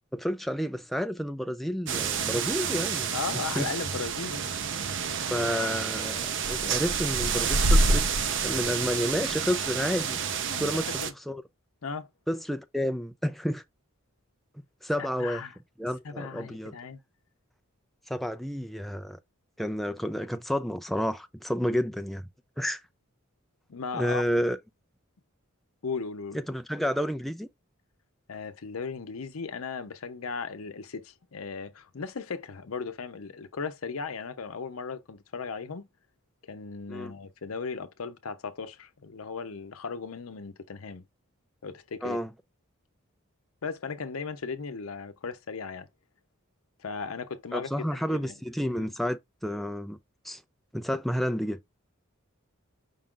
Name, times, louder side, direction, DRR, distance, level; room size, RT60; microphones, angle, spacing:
voice 1, 0.1-3.1 3.6-3.7 5.3-8.1 8.4-10.2 10.6-10.9 11.3-11.4 12.3-13.6 14.8-15.4 15.8-16.8 18.1-19.2 19.6-22.2 22.6-22.8 23.9-24.6 26.3-27.5 36.9-37.1 42.0-42.3 47.5-50.0 50.2-50.4 50.7-51.6, equal, ahead, 0.3 m, -30 dB
sound 1, 1.9-11.1, right 4 dB, 60° right, 0.6 m, -28 dB
voice 2, 3.1-4.5 10.5-10.7 11.0-11.1 11.8-12.1 15.0-15.6 16.0-17.0 23.7-24.2 25.8-26.4 28.3-35.9 36.5-41.0 41.6-42.2 43.6-45.9 46.8-48.3 48.7-48.9, left 5 dB, 85° left, 0.7 m, -37 dB
5.3 x 2.4 x 3.7 m
head